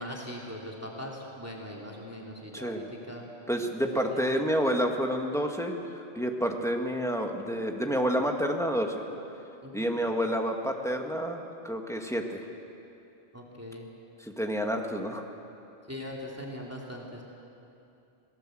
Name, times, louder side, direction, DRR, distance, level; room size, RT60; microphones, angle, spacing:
voice 1, 0.0-3.3 4.1-4.4 9.6-9.9 13.3-13.9 15.9-17.2, equal, 15° right, -2 dB, 2.9 m, -40 dB
voice 2, 2.5-2.8 3.5-8.9 9.7-12.4 14.2-15.2, equal, 5° left, 2 dB, 1.9 m, -29 dB
28.5 x 18.5 x 7.8 m, 2.8 s
omnidirectional pair, 1.1 m